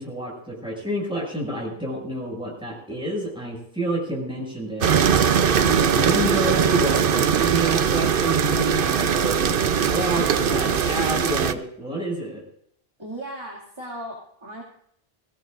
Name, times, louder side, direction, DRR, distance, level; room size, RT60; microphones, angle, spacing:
voice 1, 0.0-5.1 5.6-12.4, right 1 dB, 5° right, -3 dB, 6.6 m, -29 dB
sound 1, 4.8-11.5, right 7 dB, 60° right, 0.9 m, -21 dB
voice 2, 13.0-14.6, right 1 dB, 25° right, -4 dB, 2.4 m, -36 dB
22.0 x 16.5 x 2.6 m, 0.69 s
omnidirectional pair, 1.0 m